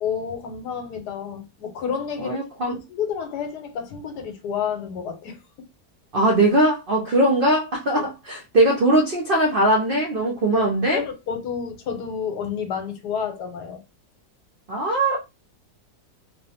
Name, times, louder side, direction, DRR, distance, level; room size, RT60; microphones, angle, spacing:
voice 1, 0.0-2.4 2.7-5.4 10.5-13.8, left 7 dB, 75° left, 1.3 m, -30 dB
voice 2, 2.2-2.8 6.1-11.0 14.7-15.2, right 1 dB, 80° right, 0.4 m, -20 dB
3.0 x 2.0 x 2.7 m
omnidirectional pair, 1.8 m